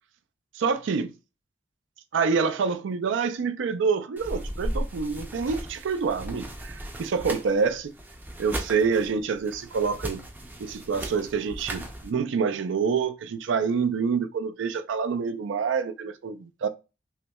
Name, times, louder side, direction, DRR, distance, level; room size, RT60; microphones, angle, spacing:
voice 1, 0.6-1.1 2.1-7.9 8.4-10.2 10.6-16.7, right 5 dB, 85° right, 0.4 m, -27 dB
sound 1, 4.2-12.1, right 1 dB, 10° right, 0.4 m, -37 dB
5.5 x 2.1 x 2.2 m
head